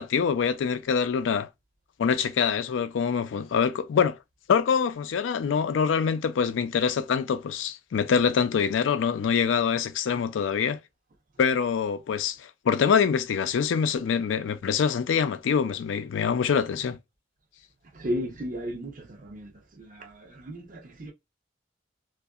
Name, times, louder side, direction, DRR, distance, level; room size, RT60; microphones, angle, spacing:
voice 1, 0.0-1.5 2.0-4.2 4.5-10.8 11.4-17.0, left 6 dB, 85° left, 0.4 m, -25 dB
voice 2, 17.9-19.5 19.8-21.1, equal, 45° right, 0.7 m, -34 dB
2.7 x 2.4 x 2.3 m
head